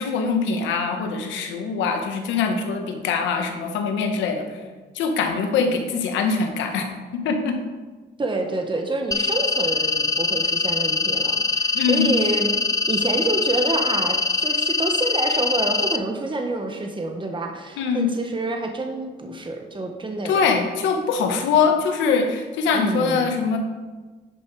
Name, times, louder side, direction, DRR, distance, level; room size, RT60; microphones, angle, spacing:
voice 1, 0.0-4.6 4.9-6.9 7.1-7.6 11.7-12.1 17.8-18.1 20.2-23.6, left 5 dB, 85° left, 5 dB, 1.2 m, -23 dB
voice 2, 8.2-12.5 12.9-20.5 22.7-23.3, right 2 dB, 25° right, 3 dB, 1.4 m, -27 dB
sound 1, 9.1-16.0, left 4 dB, 20° left, 0.6 m, -23 dB
10.5 x 5.5 x 4.8 m, 1.3 s
supercardioid pair, 65°, 19 cm